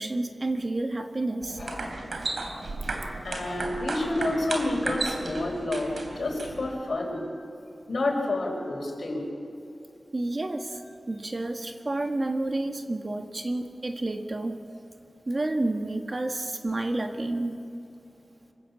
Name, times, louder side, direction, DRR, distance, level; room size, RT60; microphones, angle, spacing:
voice 1, 0.0-1.6 10.1-10.8 11.1-14.6 15.3-17.6, right 2 dB, 40° right, 5 dB, 1.6 m, -30 dB
sound 1, 1.4-6.8, right 2 dB, 75° right, 2.9 m, -34 dB
voice 2, 3.2-7.3 7.9-9.2, left 2 dB, 70° left, 1 dB, 4.8 m, -29 dB
26.5 x 16.0 x 7.3 m, 2.8 s
wide cardioid pair, 85°, 0 cm